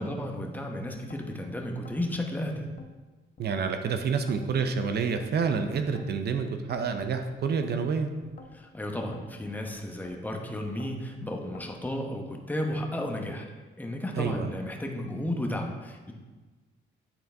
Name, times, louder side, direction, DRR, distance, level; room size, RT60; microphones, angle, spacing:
voice 1, 0.0-2.7 8.5-13.5 13.8-16.1, left 1 dB, 10° left, 1 dB, 0.9 m, -33 dB
sound 1, 0.9-1.4 1.9-2.9 3.4-3.8 4.3-5.3 5.8-6.2 6.7-7.8 8.2-8.6 9.1-10.2 10.6-11.1 11.6-12.0, left 3 dB, 40° left, 0.7 m, -50 dB
voice 2, 3.4-8.1 14.2-14.6, right 5 dB, 55° right, 7 dB, 0.5 m, -28 dB
8.8 x 3.9 x 3.4 m, 1.3 s
cardioid pair, 90°, 20 cm